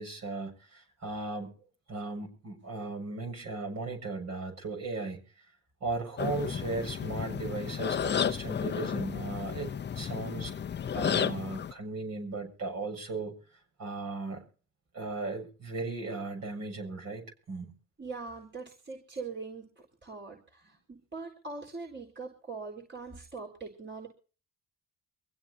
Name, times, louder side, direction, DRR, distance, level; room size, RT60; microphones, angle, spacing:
voice 1, 0.0-1.5 1.9-5.5 5.8-9.7 10.0-10.5 10.9-13.4 13.8-14.5 14.9-17.7, right 3 dB, 60° right, 4 dB, 7.2 m, -37 dB
sound 1, 6.2-11.7, left 8 dB, 35° left, 0.7 m, -32 dB
voice 2, 18.0-24.1, right 4 dB, 40° right, 1 dB, 4.3 m, -42 dB
25.0 x 16.5 x 2.8 m, 0.39 s
cardioid pair, 90°, 30 cm